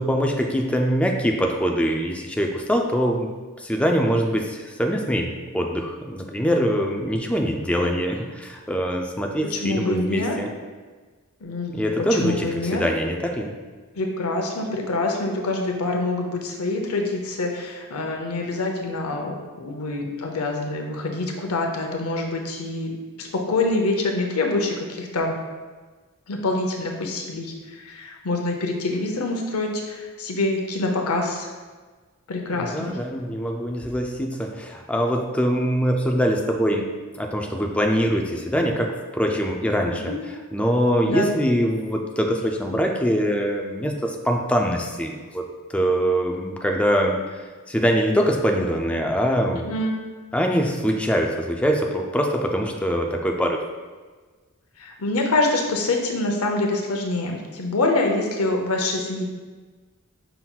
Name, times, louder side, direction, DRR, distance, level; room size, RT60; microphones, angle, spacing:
voice 1, 0.0-3.3 3.6-10.5 11.7-13.6 32.6-49.7 50.3-53.6, equal, 5° left, 2 dB, 0.3 m, -23 dB
voice 2, 9.5-10.4 11.4-11.9 12.2-12.8 13.9-25.4 26.3-31.5 32.3-33.0 40.1-40.2 41.0-41.3 49.6-49.9 54.8-59.2, left 2 dB, 75° left, 2 dB, 0.7 m, -25 dB
5.7 x 3.7 x 2.3 m, 1.4 s
head